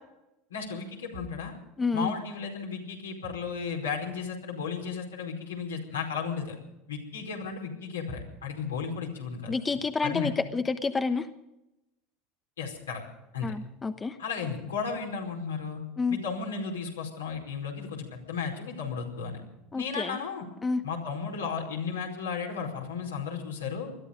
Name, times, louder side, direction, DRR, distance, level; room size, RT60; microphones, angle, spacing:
voice 1, 0.5-1.5 1.9-6.6 6.9-9.6 10.0-10.3 12.6-13.0 13.3-13.5 14.2-15.8 16.1-19.4 19.7-20.5 20.8-23.9, left 5 dB, 85° left, 0 dB, 4.8 m, -34 dB
voice 2, 1.8-2.1 9.5-11.3 13.4-14.2 16.0-16.2 19.7-20.2 20.6-20.8, left 4 dB, 20° left, 9 dB, 1.1 m, -29 dB
20.5 x 13.5 x 5.2 m, 0.91 s
hypercardioid pair, 75°, 0 cm